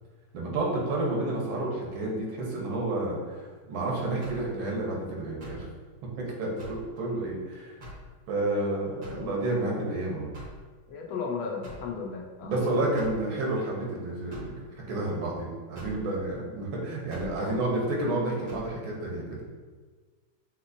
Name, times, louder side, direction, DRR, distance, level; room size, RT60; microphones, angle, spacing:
voice 1, 0.3-5.7 6.2-7.8 8.3-10.3 12.4-14.5 14.9-19.4, right 2 dB, 90° right, -2 dB, 1.8 m, -30 dB
sound 1, 4.2-4.5 5.4-5.7 6.6-6.9 7.8-8.1 9.0-9.3 10.3-10.6 11.6-11.9 13.0-13.2 14.3-14.6 15.7-16.0 17.1-17.4 18.5-18.7, equal, 45° right, 0.6 m, -43 dB
voice 2, 10.9-12.8 17.3-17.7, left 5 dB, 80° left, 0 dB, 1.4 m, -35 dB
5.8 x 2.9 x 2.6 m, 1.4 s
omnidirectional pair, 2.1 m